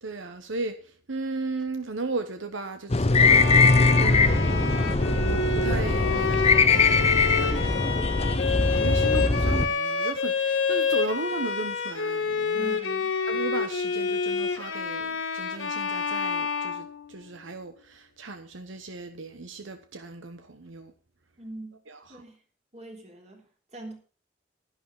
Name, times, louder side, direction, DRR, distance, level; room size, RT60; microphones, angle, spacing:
voice 1, 0.0-12.8 13.3-20.9 21.9-22.2, right 3 dB, 80° right, 1.0 m, -36 dB
sound 1, 2.9-9.7, left 3 dB, 35° left, 0.8 m, -21 dB
Bowed string instrument, 3.1-17.4, left 5 dB, 85° left, 1.6 m, -28 dB
sound 2, 3.3-7.2, right 1 dB, 10° right, 1.2 m, -41 dB
voice 2, 12.5-13.2 21.4-21.8 22.1-22.4 22.7-24.0, right 2 dB, 35° right, 3.4 m, -42 dB
11.5 x 11.0 x 4.7 m
head